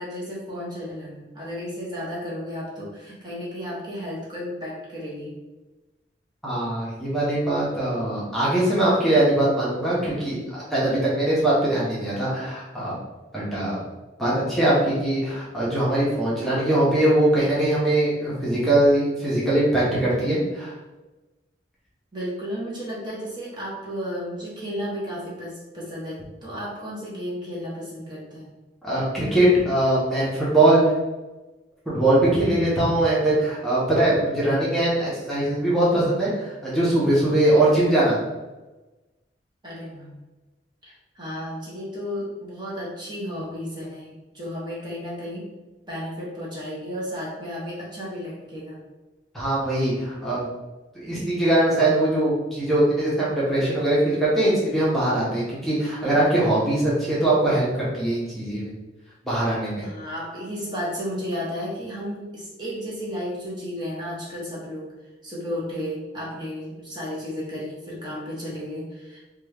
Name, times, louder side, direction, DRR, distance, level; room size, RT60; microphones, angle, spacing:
voice 1, 0.0-5.4 22.1-28.5 39.6-40.1 40.8-45.5 45.9-48.8 59.8-64.9 65.2-69.3, equal, 25° right, -6 dB, 0.8 m, -33 dB
voice 2, 6.4-13.0 13.3-13.8 14.2-20.7 28.8-30.8 31.9-38.2 49.3-50.5 50.9-58.7 59.2-59.9, right 1 dB, ahead, -8 dB, 0.8 m, -21 dB
2.9 x 2.3 x 3.3 m, 1.1 s
head